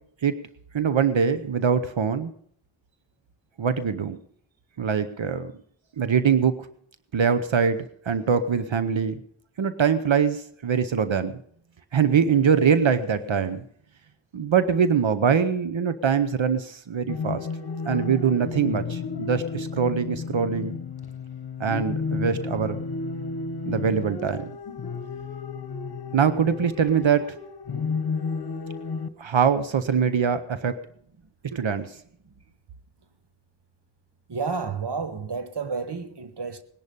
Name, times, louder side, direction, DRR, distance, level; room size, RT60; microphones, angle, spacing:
voice 1, 0.7-2.3 3.6-4.2 4.8-5.5 6.0-6.7 7.1-9.2 9.6-11.3 11.9-13.6 14.3-17.5 17.9-20.8 21.6-22.8 23.7-24.6 26.1-27.4 29.2-30.8 31.5-32.0, right 6 dB, 75° right, 0.8 m, -23 dB
sound 1, 17.1-29.1, left 4 dB, 55° left, 1.0 m, -32 dB
voice 2, 34.3-36.6, right 5 dB, 60° right, 1.1 m, -30 dB
19.5 x 11.0 x 5.3 m
wide cardioid pair, 60°, 47 cm